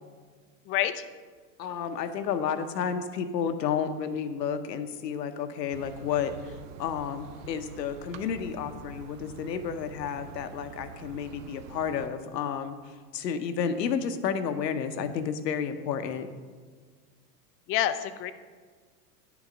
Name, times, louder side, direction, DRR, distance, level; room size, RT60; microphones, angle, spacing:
voice 1, 0.7-1.0 17.7-18.3, left 11 dB, 30° left, 11 dB, 0.5 m, -27 dB
voice 2, 1.6-12.8 13.1-16.3, left 7 dB, 85° left, 9 dB, 1.0 m, -31 dB
sound 1, 5.7-12.1, right 7 dB, 50° right, 0.7 m, -46 dB
9.7 x 7.1 x 5.1 m, 1.5 s
hypercardioid pair, 115°, 48 cm